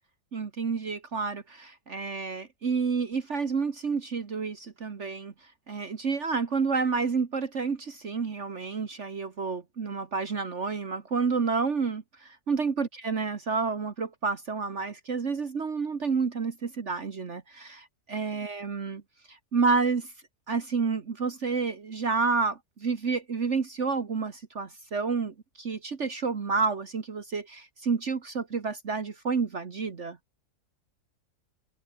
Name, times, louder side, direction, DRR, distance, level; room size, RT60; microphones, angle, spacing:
voice 1, 0.3-5.3 5.7-19.0 19.3-20.1 20.5-30.2, right 4 dB, 50° right, 1.8 m, -29 dB
omnidirectional pair, 1.6 m